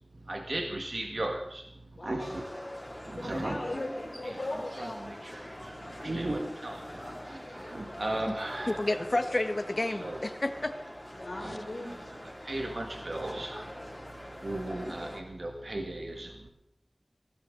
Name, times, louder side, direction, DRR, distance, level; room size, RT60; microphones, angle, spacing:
voice 1, 0.3-1.6 2.0-2.4 3.0-3.6 4.8-5.1 5.4-8.8 10.0-10.2 11.4-11.5 12.4-13.7 14.4-16.5, right 1 dB, 70° right, 2 dB, 1.9 m, -36 dB
voice 2, 2.0-2.5 2.9-5.0 5.9-6.3 6.9-7.2 11.1-12.1, left 2 dB, 80° left, 0 dB, 4.1 m, -39 dB
sound 1, 2.2-15.2, left 1 dB, 15° left, 2.8 m, -44 dB
voice 3, 8.7-10.7, left 2 dB, 55° left, 8 dB, 1.3 m, -30 dB
20.0 x 16.0 x 4.0 m, 0.75 s
wide cardioid pair, 55°, 0 cm